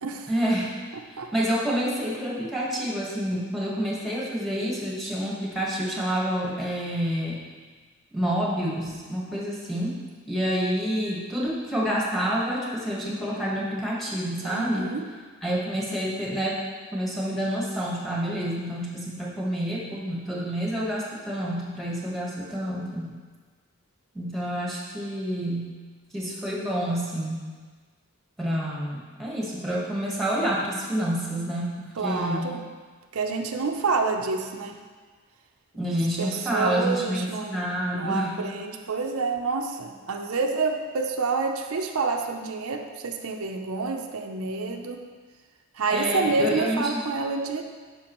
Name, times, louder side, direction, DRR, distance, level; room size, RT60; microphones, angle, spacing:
voice 1, 0.3-0.7 1.3-7.4 8.1-10.0 10.3-14.9 15.4-16.6 16.9-23.1 24.1-25.7 26.1-27.5 28.4-32.6 35.7-38.4 45.9-47.0, equal, ahead, -5 dB, 1.3 m, -28 dB
voice 2, 14.4-15.1 32.0-32.6 33.1-34.8 36.2-37.6 37.9-45.0 45.8-47.6, right 4 dB, 85° right, 4 dB, 0.6 m, -28 dB
9.6 x 5.8 x 3.0 m, 1.5 s
head